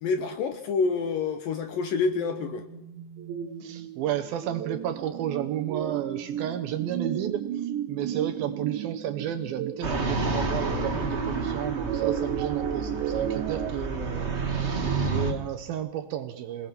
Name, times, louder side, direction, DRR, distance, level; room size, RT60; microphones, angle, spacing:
voice 1, 0.0-2.6, left 4 dB, 70° left, 9 dB, 2.3 m, -27 dB
sound 1, 1.5-13.7, right 10 dB, 85° right, 3.3 m, -33 dB
voice 2, 3.6-16.7, right 11 dB, 70° right, 7 dB, 2.4 m, -32 dB
sound 2, 9.8-15.3, right 3 dB, 45° right, 0.8 m, -30 dB
27.0 x 18.5 x 6.0 m, 0.90 s
omnidirectional pair, 5.1 m